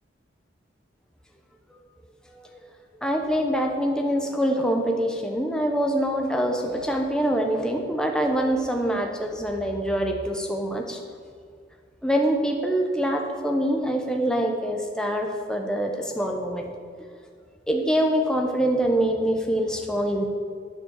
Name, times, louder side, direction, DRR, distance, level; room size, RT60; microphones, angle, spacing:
voice 1, 3.0-11.0 12.0-16.7 17.7-20.3, equal, 5° left, 2 dB, 0.8 m, -25 dB
9.2 x 7.5 x 7.3 m, 2.2 s
head